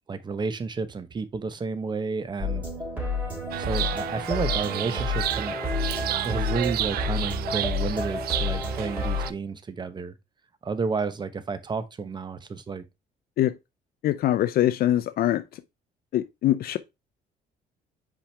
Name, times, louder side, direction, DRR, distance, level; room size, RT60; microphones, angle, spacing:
voice 1, 0.1-2.6 3.6-5.5 6.2-10.1 10.6-12.8, right 4 dB, 25° right, 0.9 m, -31 dB
sound 1, 2.4-9.3, left 3 dB, 10° right, 3.6 m, -30 dB
Chirp tweet, 3.5-9.3, right 13 dB, 65° right, 0.5 m, -31 dB
voice 2, 14.0-15.4 16.1-16.8, left 13 dB, 60° left, 0.6 m, -23 dB
5.8 x 4.9 x 3.3 m
cardioid pair, 110°, 17 cm